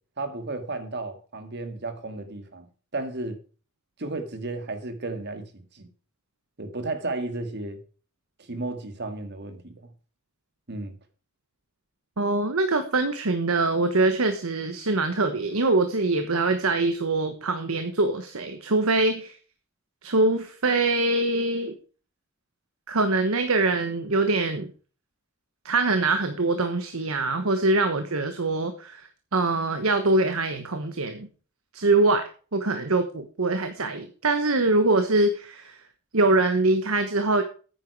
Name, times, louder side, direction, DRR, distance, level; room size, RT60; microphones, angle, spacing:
voice 1, 0.2-2.7 2.9-3.4 4.0-5.9 6.6-7.8 8.5-9.9 10.7-10.9, right 2 dB, 55° right, 1.9 m, -33 dB
voice 2, 12.2-19.3 20.0-21.7 22.9-24.7 25.6-31.3 31.7-35.8 36.1-37.4, right 2 dB, 85° right, 1.3 m, -23 dB
9.7 x 9.3 x 4.7 m
head